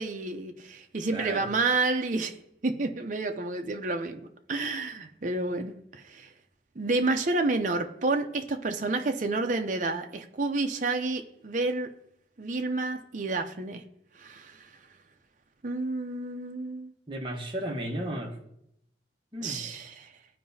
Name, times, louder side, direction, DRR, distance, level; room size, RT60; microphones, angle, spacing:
voice 1, 0.0-2.3 2.6-4.2 4.5-6.3 6.8-11.9 12.4-13.8 14.2-14.7 15.6-16.9 19.4-20.1, right 3 dB, 45° right, 5 dB, 0.6 m, -30 dB
voice 2, 1.1-1.5 17.1-18.4 19.3-19.6, right 1 dB, 25° right, 0 dB, 1.0 m, -34 dB
14.0 x 4.7 x 2.7 m, 0.77 s
head